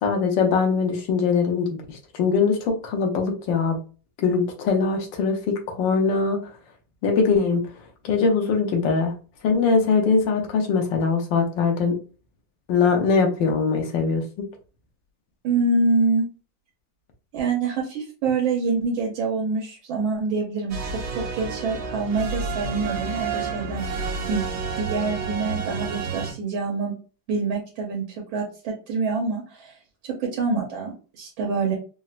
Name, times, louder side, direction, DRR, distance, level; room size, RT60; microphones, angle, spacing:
voice 1, 0.0-3.8 4.2-6.4 7.0-7.6 8.0-9.1 9.4-11.9 12.7-14.5, left 5 dB, 70° left, 3 dB, 1.4 m, -22 dB
voice 2, 15.4-16.3 17.3-23.9 24.3-24.5 24.8-26.9 27.3-28.0 28.3-29.7 30.2-31.7, right 3 dB, 85° right, -1 dB, 1.5 m, -26 dB
sound 1, 20.7-26.3, right 5 dB, 65° right, 1.3 m, -30 dB
4.1 x 2.1 x 2.4 m, 0.35 s
omnidirectional pair, 2.2 m